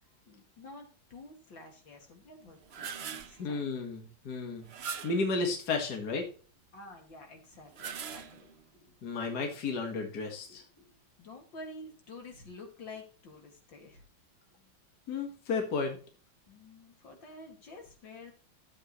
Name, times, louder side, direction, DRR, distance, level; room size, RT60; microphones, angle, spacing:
voice 1, 0.3-3.6 6.7-8.5 11.2-14.0 16.5-18.3, left 2 dB, 75° left, 2 dB, 3.1 m, -49 dB
sound 1, 2.5-3.4 4.7-5.3 7.6-8.6, right 6 dB, 60° right, 0.6 m, -41 dB
voice 2, 3.4-4.7 5.0-6.2 9.0-10.6 15.1-16.0, left 4 dB, 55° left, 2 dB, 2.2 m, -33 dB
13.0 x 8.1 x 3.2 m, 0.39 s
omnidirectional pair, 2.1 m